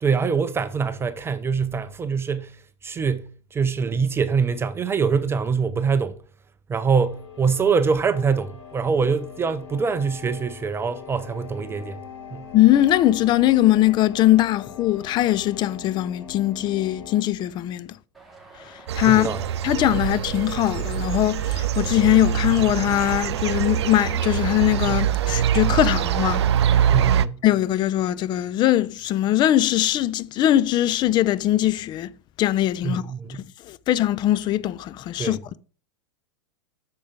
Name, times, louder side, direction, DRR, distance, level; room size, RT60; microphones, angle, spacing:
voice 1, 0.0-2.6 2.8-6.2 6.7-12.0 12.3-12.5 19.1-19.5 26.9-27.4 32.8-33.4 35.2-35.4, right 5 dB, 15° right, 0.6 m, -24 dB
sound 1, 7.0-17.2, left 8 dB, 75° left, 3.1 m, -42 dB
voice 2, 12.5-18.0 18.9-19.3 19.6-26.4 26.7-26.8 27.4-32.1 32.4-33.0 33.7-35.6, left 14 dB, 30° left, 0.5 m, -21 dB
Traffic noise roadway noise, 18.1-26.4, right 3 dB, ahead, 2.4 m, -46 dB
sound 2, 18.9-27.3, right 10 dB, 70° right, 0.4 m, -23 dB
8.4 x 6.7 x 3.6 m
figure-of-eight pair, 95°, 15 cm